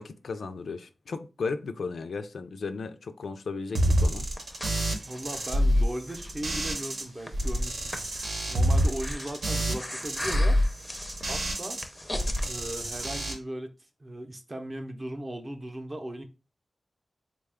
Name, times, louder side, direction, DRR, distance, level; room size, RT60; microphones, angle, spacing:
voice 1, 0.0-4.3, left 4 dB, 85° left, 0.4 m, -35 dB
sound 1, 3.7-7.0 7.3-11.8 12.1-13.3, equal, 85° right, 0.9 m, -27 dB
Breathing, 4.0-12.5, left 1 dB, 15° left, 0.5 m, -41 dB
voice 2, 5.0-10.7 11.3-11.8 12.4-13.7 14.0-16.2, right 1 dB, 30° right, 0.6 m, -38 dB
3.6 x 2.3 x 3.4 m
wide cardioid pair, 85°, 0 cm